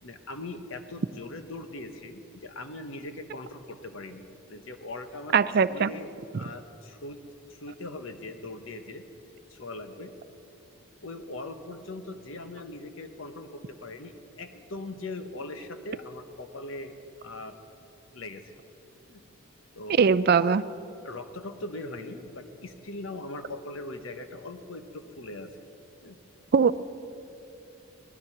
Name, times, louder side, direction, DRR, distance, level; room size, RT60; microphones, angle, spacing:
voice 1, 0.0-5.3 5.7-7.2 7.5-9.0 9.5-10.1 11.0-16.9 17.2-17.5 18.1-18.4 19.1-19.2 19.7-20.0 21.0-25.5 26.0-26.2, left 2 dB, 65° left, 8 dB, 1.1 m, -40 dB
voice 2, 5.3-5.9 20.0-20.6 26.5-26.8, right 6 dB, 45° right, 15 dB, 0.4 m, -21 dB
18.0 x 12.5 x 5.9 m, 2.7 s
head